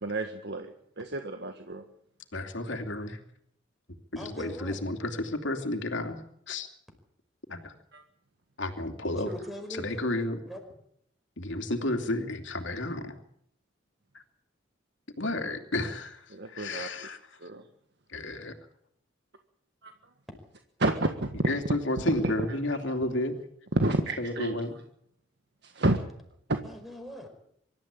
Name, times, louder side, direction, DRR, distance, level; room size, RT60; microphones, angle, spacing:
voice 1, 0.0-1.8 7.9-8.0 16.3-17.1 17.4-17.6 19.8-19.9 20.8-21.3 22.1-22.2 23.7-24.5 25.6-26.0 26.5-26.6, right 2 dB, 60° right, 6 dB, 1.6 m, -30 dB
voice 2, 2.3-3.2 4.1-6.2 6.5-6.7 7.5-7.7 8.6-9.3 9.7-10.4 11.4-13.1 14.1-14.2 15.2-17.4 18.1-18.5 21.4-23.3 24.2-24.7, left 1 dB, 70° left, 5 dB, 2.8 m, -32 dB
voice 3, 4.2-4.8 9.1-10.1 10.5-10.6 26.6-27.3, equal, ahead, 5 dB, 5.0 m, -41 dB
24.5 x 13.0 x 8.9 m, 0.72 s
head